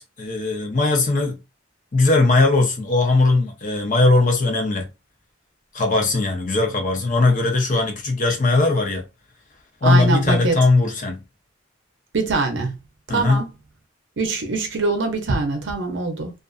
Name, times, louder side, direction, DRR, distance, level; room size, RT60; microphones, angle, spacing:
voice 1, 0.0-1.4 1.9-4.9 5.7-9.0 9.8-11.2 13.1-13.5, left 3 dB, 45° left, 0.6 m, -19 dB
voice 2, 9.8-10.6 12.1-12.7 13.1-13.5 14.2-16.3, right 3 dB, 65° right, 0.6 m, -23 dB
2.5 x 2.4 x 2.3 m
head